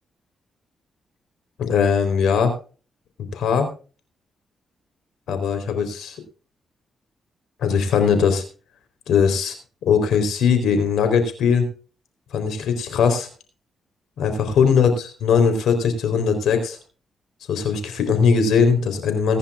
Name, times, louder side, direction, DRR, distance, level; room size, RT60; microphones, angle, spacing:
voice 1, 1.6-2.5 3.3-3.7 5.3-6.2 7.6-8.4 9.1-9.5 9.9-11.7 12.3-13.3 14.2-16.8 17.5-19.4, left 6 dB, 85° left, 8 dB, 4.0 m, -20 dB
20.5 x 10.5 x 2.5 m, 0.36 s
cardioid pair, 75°, 0 cm